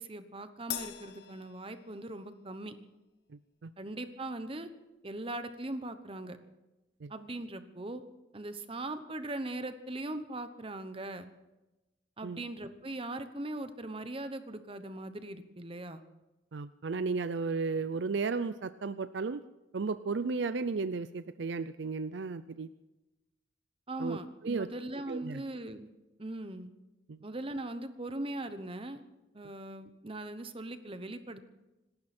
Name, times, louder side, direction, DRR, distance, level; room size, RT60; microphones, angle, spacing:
voice 1, 0.0-2.7 3.8-4.7 5.0-6.4 7.1-8.0 8.3-11.3 12.2-16.0 23.9-25.9 26.2-26.7 27.2-29.0 29.3-31.5, right 2 dB, 30° right, 10 dB, 1.0 m, -40 dB
Crash cymbal, 0.7-2.4, left 11 dB, 60° left, 0.9 m, -42 dB
voice 2, 3.3-3.7 7.0-7.1 12.2-12.4 16.5-19.4 19.7-22.7 24.0-24.2 24.4-24.7 25.1-25.4 27.1-27.2, right 4 dB, 65° right, 13 dB, 0.5 m, -34 dB
26.5 x 12.5 x 4.3 m, 1.0 s
head